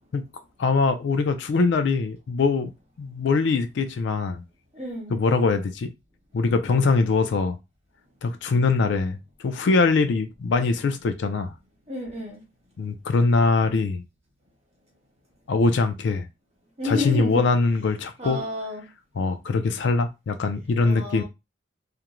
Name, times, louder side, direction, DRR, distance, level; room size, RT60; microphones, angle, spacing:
voice 1, 0.6-2.7 3.0-4.4 5.1-5.9 6.3-7.6 8.2-11.5 12.8-14.0 15.5-16.3 16.8-18.4 19.2-21.2, left 4 dB, 60° left, 0.3 m, -22 dB
voice 2, 4.7-5.2 11.9-12.4 16.8-17.5 18.2-18.9 20.8-21.2, left 2 dB, 30° right, 1.0 m, -31 dB
2.5 x 2.1 x 2.9 m
head